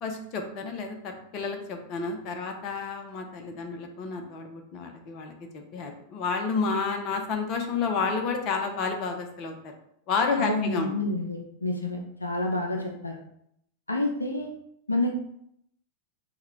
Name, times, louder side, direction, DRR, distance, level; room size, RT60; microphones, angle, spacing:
voice 1, 0.0-9.7 10.1-10.9, left 4 dB, 40° left, 4 dB, 0.6 m, -30 dB
voice 2, 10.4-13.2 13.9-14.5 14.9-15.1, left 2 dB, 80° left, 3 dB, 0.5 m, -28 dB
5.7 x 2.2 x 3.1 m, 0.74 s
figure-of-eight pair, 90°, 0 cm